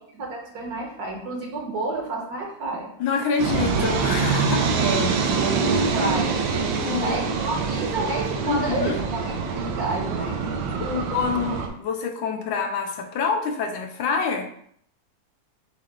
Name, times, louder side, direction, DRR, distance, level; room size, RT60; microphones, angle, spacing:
voice 1, 0.1-2.9 4.7-11.1, right 2 dB, 60° right, 0 dB, 1.4 m, -30 dB
voice 2, 3.0-4.8 5.1-5.2 6.7-7.2 8.5-9.0 10.8-14.5, left 5 dB, 85° left, 4 dB, 1.4 m, -27 dB
sound 1, 3.4-11.7, right 5 dB, 85° right, 1.4 m, -25 dB
5.1 x 2.4 x 4.3 m, 0.66 s
omnidirectional pair, 2.1 m